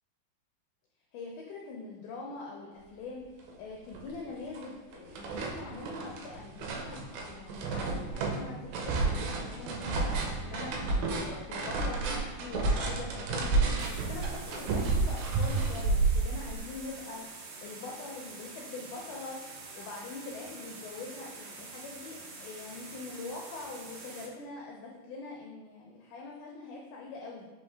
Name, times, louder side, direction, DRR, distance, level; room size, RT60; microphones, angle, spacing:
voice 1, 1.1-10.1 10.4-27.5, left 3 dB, 85° left, -1 dB, 1.8 m, -43 dB
sound 1, 3.5-3.6 3.9-4.7 4.9-16.6, right 3 dB, 90° right, 2.4 m, -31 dB
sound 2, 13.8-24.3, right 3 dB, 75° right, 1.8 m, -46 dB
5.5 x 3.0 x 3.2 m, 1.2 s
omnidirectional pair, 4.0 m